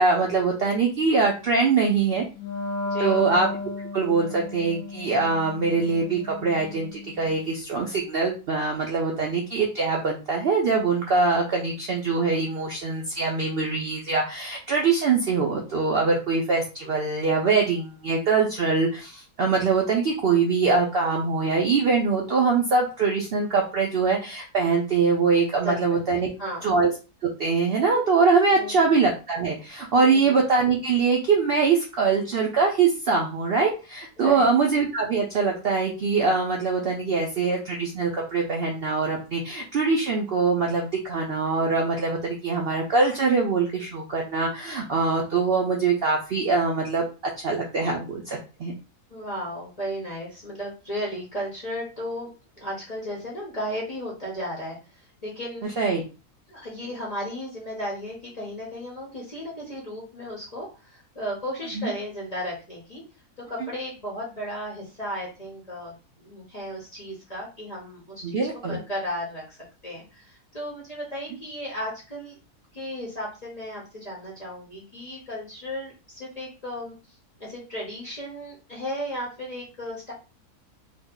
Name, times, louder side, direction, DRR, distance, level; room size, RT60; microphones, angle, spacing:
voice 1, 0.0-2.2 3.0-3.5 3.9-26.3 26.6-26.9 27.2-47.0 47.4-48.7 55.8-56.0 61.7-61.9 68.2-68.8, right 4 dB, 90° right, 0 dB, 0.5 m, -23 dB
Wind instrument woodwind instrument, 2.3-7.4, left 3 dB, 70° left, 1.0 m, -34 dB
voice 2, 2.9-3.3 25.6-26.7 28.5-28.8 30.0-30.4 34.2-34.5 49.1-52.3 52.6-55.7 56.5-63.0 63.5-68.4 68.7-69.4 69.8-72.4 72.7-76.9 77.4-80.1, equal, 30° left, -4 dB, 0.8 m, -35 dB
3.0 x 2.0 x 3.6 m, 0.32 s
omnidirectional pair, 1.6 m